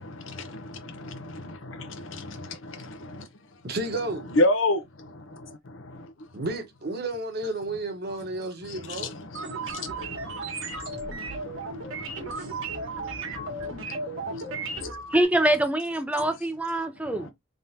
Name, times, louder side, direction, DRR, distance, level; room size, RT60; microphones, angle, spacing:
voice 1, 0.0-3.3 4.3-6.3 8.6-14.9 16.2-16.3 17.0-17.3, left 2 dB, 75° left, 0.8 m, -33 dB
voice 2, 3.6-4.4 6.3-9.1, right 2 dB, 50° right, 1.1 m, -32 dB
sound 1, 9.3-15.2, right 3 dB, 85° right, 1.5 m, -35 dB
voice 3, 15.1-17.3, right 1 dB, 5° right, 0.5 m, -24 dB
3.6 x 3.5 x 2.7 m
head